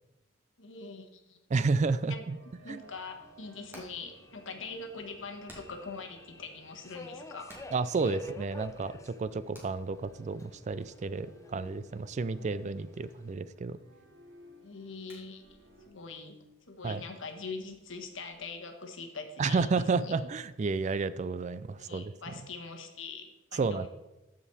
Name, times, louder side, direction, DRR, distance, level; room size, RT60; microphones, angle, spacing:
voice 1, 0.6-1.4 2.1-2.2 2.6-7.5 12.3-12.6 14.6-15.4 15.9-16.4 16.7-20.1 21.8-23.9, left 4 dB, 70° left, 5 dB, 1.3 m, -43 dB
voice 2, 1.5-2.4 2.7-2.8 7.7-13.8 16.8-17.0 19.4-22.3 23.5-23.9, right 4 dB, 35° right, 15 dB, 0.3 m, -31 dB
sound 1, 1.8-15.9, right 1 dB, 80° right, 2.7 m, -59 dB
Subway metro underground, 2.8-13.3, left 1 dB, 15° left, 0.5 m, -51 dB
Hammer, 3.2-18.4, equal, 10° right, 2.2 m, -60 dB
14.5 x 5.2 x 4.1 m, 1.0 s
head